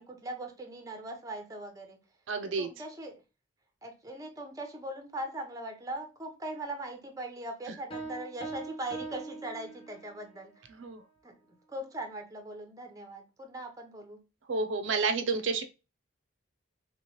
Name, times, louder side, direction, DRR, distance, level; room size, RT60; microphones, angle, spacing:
voice 1, 0.0-2.0 2.6-3.2 3.8-10.6 11.2-11.3 11.7-14.2, right 1 dB, 15° right, 0.6 m, -40 dB
voice 2, 2.3-2.7 10.8-11.0 14.5-15.6, right 4 dB, 70° right, 0.4 m, -30 dB
sound 1, 7.9-10.3, right 2 dB, 25° left, 0.6 m, -42 dB
3.0 x 3.0 x 2.8 m
head